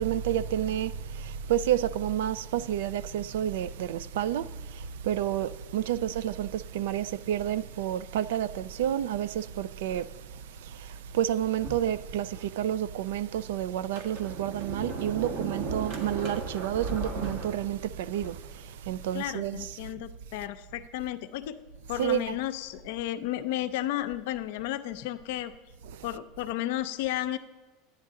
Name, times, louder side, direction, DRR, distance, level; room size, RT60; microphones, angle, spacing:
voice 1, 0.0-19.9 21.9-22.4 25.8-26.2, right 11 dB, 80° right, 0.3 m, -30 dB
Sliding door, 11.6-12.5 13.1-13.2 13.8-18.6, right 3 dB, 60° right, 1.5 m, -36 dB
voice 2, 19.1-21.6 21.9-25.5 26.0-27.4, left 13 dB, 70° left, 0.5 m, -33 dB
10.5 x 9.7 x 3.7 m
supercardioid pair, 125°, 0 cm